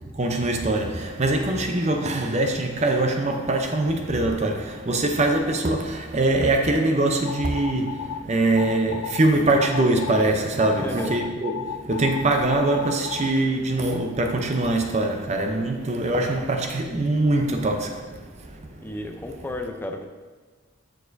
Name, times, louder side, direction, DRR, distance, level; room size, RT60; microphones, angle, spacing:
voice 1, 0.1-18.9, right 2 dB, 35° right, 0.6 m, -23 dB
sound 1, 7.2-8.2 8.6-9.2 9.6-10.2 10.6-13.3, left 9 dB, 90° left, 0.4 m, -34 dB
voice 2, 10.8-11.1 18.8-20.1, left 1 dB, 10° left, 0.4 m, -32 dB
7.0 x 6.4 x 2.6 m
head